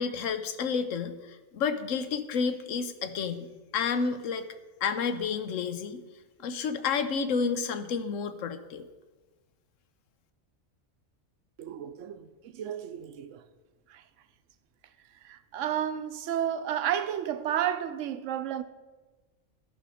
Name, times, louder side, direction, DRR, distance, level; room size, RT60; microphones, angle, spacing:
voice 1, 0.0-3.5 3.7-4.4 4.8-6.0 6.4-8.9, left 5 dB, 85° left, 1.1 m, -30 dB
voice 2, 11.6-13.5 13.9-14.0 15.2-18.6, right 10 dB, 80° right, 1.0 m, -32 dB
13.5 x 5.6 x 4.9 m
omnidirectional pair, 1.3 m